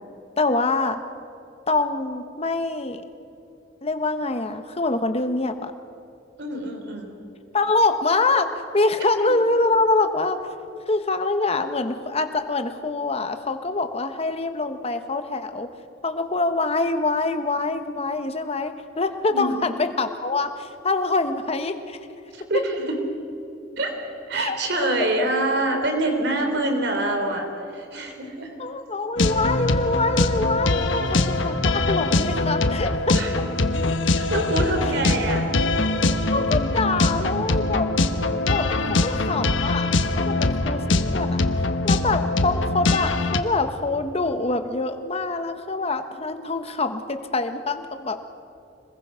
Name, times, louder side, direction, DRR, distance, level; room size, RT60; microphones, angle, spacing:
voice 1, 0.4-1.0 1.7-3.0 3.8-5.7 7.5-10.4 10.9-15.7 16.0-22.0 24.3-24.6 28.6-33.1 36.3-37.9 38.4-39.9 40.2-48.2, left 3 dB, 30° left, 8 dB, 1.1 m, -25 dB
voice 2, 6.4-7.1 19.3-19.6 22.3-22.7 23.8-23.9 24.3-27.5 27.7-28.5 33.1-33.3 34.2-35.5, right 2 dB, 60° right, 4 dB, 3.4 m, -25 dB
sound 1, 29.2-43.4, left 2 dB, 80° left, 1.1 m, -22 dB
26.5 x 20.5 x 5.7 m, 2.8 s
head